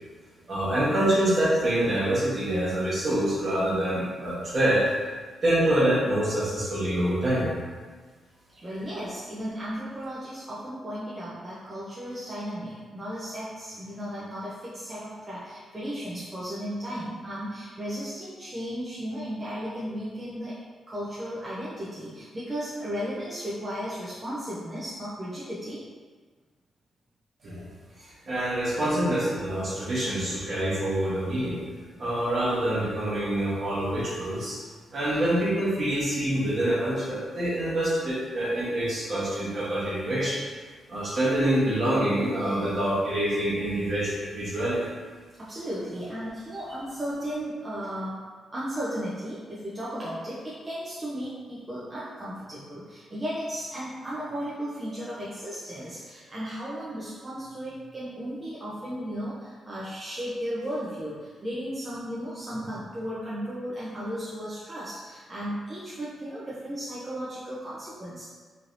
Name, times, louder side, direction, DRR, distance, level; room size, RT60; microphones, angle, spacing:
voice 1, 0.5-4.8 5.4-7.5 27.4-27.7 28.0-31.6 32.0-34.6 34.9-40.4 40.9-45.0, right 1 dB, 40° right, -8 dB, 1.0 m, -26 dB
voice 2, 8.6-25.8 45.4-48.2 48.5-68.2, equal, 20° right, -9 dB, 0.5 m, -35 dB
3.1 x 2.6 x 2.5 m, 1.5 s
wide cardioid pair, 155°, 0 cm